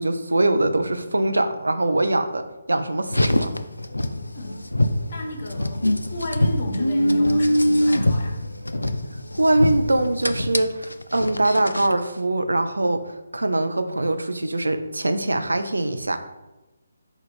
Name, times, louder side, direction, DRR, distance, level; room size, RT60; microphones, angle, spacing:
voice 1, 0.0-2.4 2.7-3.5 9.3-13.1 13.3-16.2, right 2 dB, 80° right, 8 dB, 0.4 m, -22 dB
Car, 3.0-12.0, left 1 dB, 90° left, 0.3 m, -24 dB
voice 2, 4.3-4.6 5.1-8.4, equal, 45° left, 1 dB, 1.1 m, -33 dB
4.3 x 2.4 x 4.8 m, 1.0 s
figure-of-eight pair, 150°, 0 cm